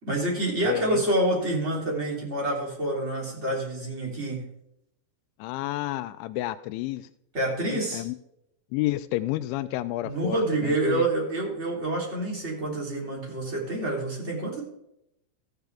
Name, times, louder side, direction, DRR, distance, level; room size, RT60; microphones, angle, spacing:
voice 1, 0.0-4.5 7.3-8.1 10.0-14.6, right 1 dB, 15° right, -2 dB, 2.8 m, -27 dB
voice 2, 0.7-1.0 5.4-7.1 7.7-8.2 8.7-11.1, left 16 dB, 85° left, 12 dB, 2.9 m, -30 dB
14.5 x 9.1 x 3.4 m, 0.80 s
omnidirectional pair, 5.3 m